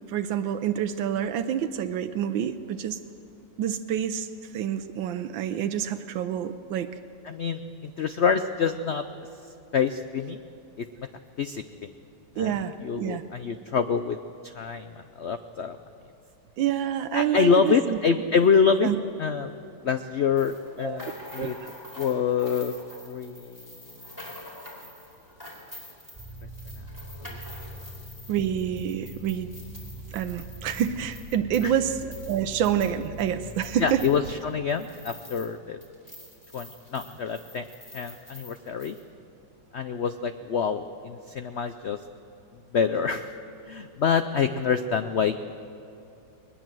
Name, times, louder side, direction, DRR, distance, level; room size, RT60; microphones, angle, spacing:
voice 1, 0.1-3.0 3.6-4.3 4.5-6.9 12.4-13.2 16.6-18.0 18.8-19.0 20.8-21.0 21.4-21.5 28.3-29.5 30.1-32.0 32.3-34.0, right 9 dB, 90° right, 8 dB, 1.5 m, -27 dB
voice 2, 7.2-9.0 9.7-10.4 10.8-11.1 11.4-11.6 12.4-12.5 12.8-14.2 14.4-15.8 17.1-18.9 19.2-19.5 19.8-21.6 22.0-22.7 23.0-23.8 27.3-27.4 31.6-31.7 33.8-35.8 36.5-37.7 37.9-39.0 39.7-42.0 42.7-43.3 43.6-45.5, left 6 dB, 90° left, 9 dB, 0.5 m, -26 dB
sound 1, 20.4-35.6 35.8-39.0, left 1 dB, 10° left, 4.2 m, -46 dB
sound 2, 26.1-34.2, equal, 5° right, 3.6 m, -42 dB
21.0 x 20.0 x 7.6 m, 2.7 s
omnidirectional pair, 2.0 m